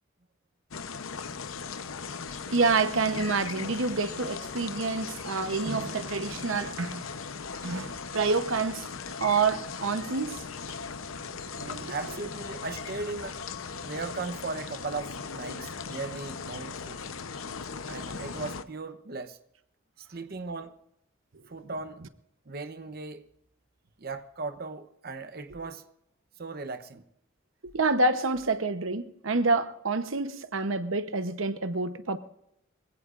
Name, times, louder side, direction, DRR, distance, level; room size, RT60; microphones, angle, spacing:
sound 1, 0.7-18.6, left 5 dB, 90° left, 0.8 m, -38 dB
voice 1, 2.4-7.1 7.6-8.9 9.2-10.5 11.7-11.9 27.7-32.2, right 3 dB, 75° right, 0.9 m, -28 dB
voice 2, 11.5-13.4 13.8-17.1 17.9-19.4 20.0-20.7 21.5-22.0 22.5-23.2 24.0-25.8 26.4-27.0, right 3 dB, 50° right, 0.9 m, -37 dB
25.5 x 16.5 x 2.5 m
head